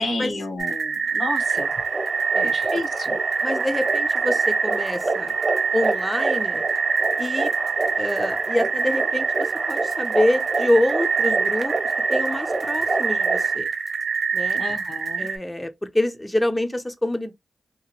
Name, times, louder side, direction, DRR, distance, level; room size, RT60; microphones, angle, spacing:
voice 1, 0.0-1.7 2.5-3.2 14.6-15.3, left 2 dB, 75° left, 0.9 m, -30 dB
sound 1, 0.6-15.4, right 5 dB, 70° right, 0.5 m, -25 dB
sound 2, 1.4-13.6, right 2 dB, 40° right, 1.0 m, -29 dB
voice 2, 3.4-5.3 5.7-6.6 7.2-7.5 8.0-11.7 12.1-13.7 14.3-14.6 15.2-17.3, left 1 dB, 15° left, 0.5 m, -26 dB
2.8 x 2.4 x 2.8 m
cardioid pair, 50°, 0 cm